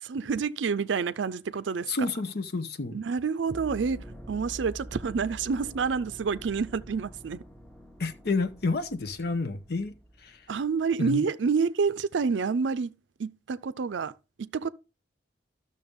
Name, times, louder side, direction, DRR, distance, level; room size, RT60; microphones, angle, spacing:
voice 1, 0.0-1.9 2.9-7.4 10.5-12.9 13.2-14.1 14.4-14.7, right 5 dB, 85° right, 0.5 m, -28 dB
voice 2, 1.9-3.0 8.0-10.0 10.2-10.4 11.0-11.2, left 3 dB, 60° left, 0.8 m, -30 dB
sound 1, 3.5-10.8, right 1 dB, 10° left, 0.9 m, -46 dB
12.5 x 6.6 x 3.6 m
head